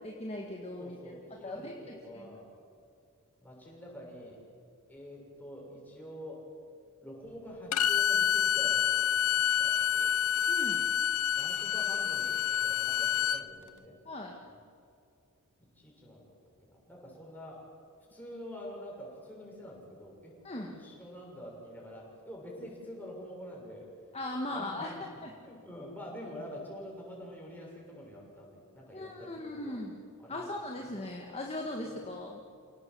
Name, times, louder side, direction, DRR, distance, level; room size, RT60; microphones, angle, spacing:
voice 1, 0.2-1.0 1.4-1.7 2.1-2.4 10.5-10.9 14.1-14.4 20.4-20.7 24.1-25.3 28.9-30.0 30.3-32.4, left 1 dB, 30° left, 0 dB, 1.8 m, -38 dB
voice 2, 0.8-2.5 3.4-4.4 4.9-6.4 7.0-9.0 9.4-10.1 11.4-14.0 14.4-14.5 15.8-16.3 16.6-17.6 18.1-23.8 24.5-29.8 30.2-30.5 31.8-32.0, equal, 10° left, -3 dB, 6.9 m, -46 dB
Bowed string instrument, 7.7-13.4, left 9 dB, 75° left, 0.7 m, -28 dB
28.5 x 17.5 x 7.9 m, 2.4 s
head